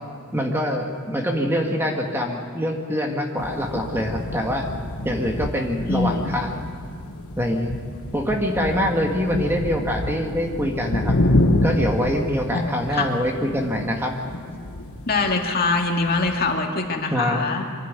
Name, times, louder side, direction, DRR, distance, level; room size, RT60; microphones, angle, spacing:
voice 1, 0.3-4.7 5.0-6.6 7.4-7.8 8.1-11.1 11.6-14.2 17.1-17.4, equal, 10° right, 2 dB, 1.7 m, -24 dB
sound 1, 3.4-16.5, left 1 dB, 75° left, 1.3 m, -28 dB
voice 2, 5.9-6.3 12.5-13.1 15.1-17.6, left 3 dB, 45° left, 1 dB, 2.1 m, -23 dB
24.5 x 12.5 x 9.4 m, 2.3 s
head